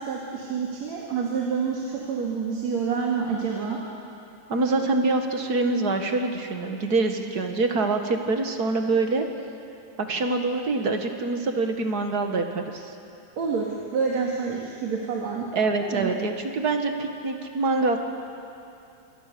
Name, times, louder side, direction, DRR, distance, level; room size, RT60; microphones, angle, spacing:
voice 1, 0.0-3.8 13.4-15.5 15.8-16.1, right 5 dB, 60° right, -3 dB, 3.5 m, -28 dB
voice 2, 4.5-9.2 10.1-12.9 15.5-18.0, right 3 dB, 40° right, 4 dB, 1.6 m, -25 dB
28.0 x 23.5 x 6.9 m, 2.6 s
omnidirectional pair, 3.5 m